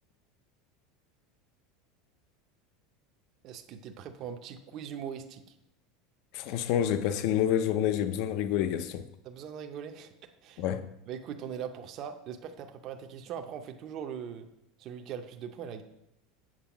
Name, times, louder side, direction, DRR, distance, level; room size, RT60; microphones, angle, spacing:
voice 1, 3.4-5.5 9.2-10.1 10.4-10.6 11.1-14.5 14.8-15.8, right 8 dB, 35° right, 0.5 m, -40 dB
voice 2, 6.3-9.0 10.6-10.9, left 10 dB, 50° left, 0.4 m, -28 dB
7.4 x 4.6 x 7.0 m
supercardioid pair, 165°, 0 cm